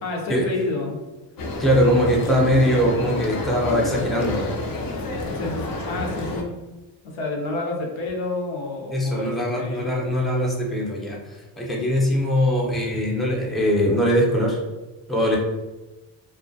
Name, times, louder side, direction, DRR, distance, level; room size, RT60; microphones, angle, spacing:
voice 1, 0.0-1.0 5.3-6.5 7.0-9.9, left 2 dB, 75° left, -1 dB, 0.7 m, -29 dB
sound 1, 1.4-6.4, left 2 dB, 45° left, 0.6 m, -29 dB
voice 2, 1.6-4.5 8.9-11.2 11.6-14.6 15.1-15.4, equal, ahead, -3 dB, 0.6 m, -21 dB
2.3 x 2.1 x 2.6 m, 1.1 s
supercardioid pair, 60°, 48 cm